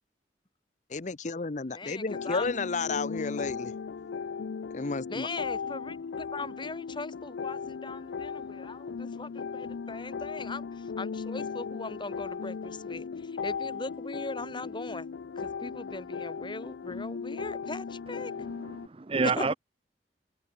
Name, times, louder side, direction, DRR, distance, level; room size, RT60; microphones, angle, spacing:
voice 1, 0.9-3.7 4.7-5.3, left 4 dB, 45° left, 0.8 m, -32 dB
voice 2, 1.7-2.5 5.1-18.3 19.4-19.6, left 2 dB, 25° left, 2.0 m, -40 dB
sound 1, 2.1-18.9, left 5 dB, 90° left, 0.4 m, -37 dB
voice 3, 18.2-19.5, right 4 dB, 30° right, 0.6 m, -30 dB
head